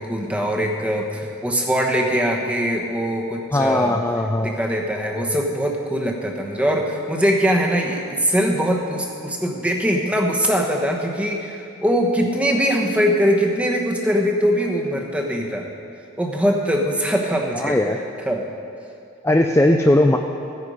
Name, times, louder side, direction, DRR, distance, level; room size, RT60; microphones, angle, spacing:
voice 1, 0.0-4.0 4.4-15.6 16.2-17.8 18.3-18.5, equal, 5° right, 1 dB, 1.0 m, -22 dB
voice 2, 3.5-4.5 17.5-18.0 19.2-20.2, left 1 dB, 10° left, 3 dB, 0.4 m, -18 dB
15.0 x 9.4 x 5.0 m, 2.5 s
head